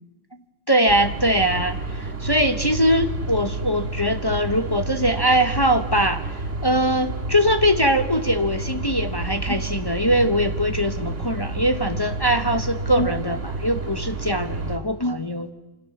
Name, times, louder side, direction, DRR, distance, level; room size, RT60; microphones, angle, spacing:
voice 1, 0.7-6.3 6.6-15.5, equal, 20° left, 7 dB, 1.1 m, -22 dB
sound 1, 0.9-14.8, right 3 dB, 75° right, 2.7 m, -30 dB
28.0 x 25.0 x 7.1 m, 1.1 s
omnidirectional pair, 1.3 m